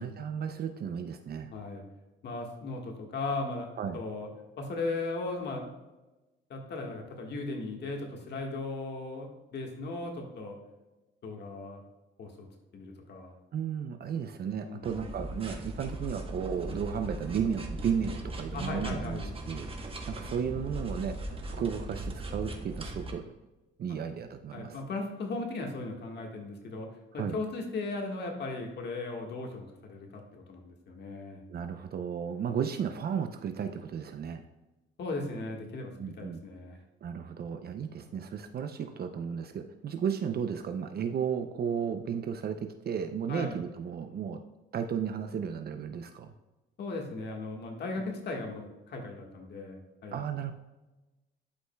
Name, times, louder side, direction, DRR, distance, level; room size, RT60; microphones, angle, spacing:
voice 1, 0.0-1.5 3.8-4.0 13.5-19.7 20.1-23.4 23.8-24.8 27.2-27.4 31.5-34.4 36.0-36.4 37.0-44.5 44.7-46.3 50.1-50.5, right 7 dB, 50° right, 7 dB, 0.5 m, -34 dB
voice 2, 1.5-1.8 2.2-3.7 3.9-4.3 4.6-5.7 6.5-10.6 11.2-11.8 12.2-12.5 12.7-13.3 14.7-15.0 18.5-19.3 24.5-26.9 27.1-31.4 35.0-36.8 43.3-43.6 46.8-50.2, left 3 dB, 60° left, 1 dB, 1.6 m, -37 dB
sound 1, 14.8-23.1, right 1 dB, 30° right, 1.1 m, -39 dB
11.5 x 5.3 x 2.3 m, 1.1 s
cardioid pair, 90°, 20 cm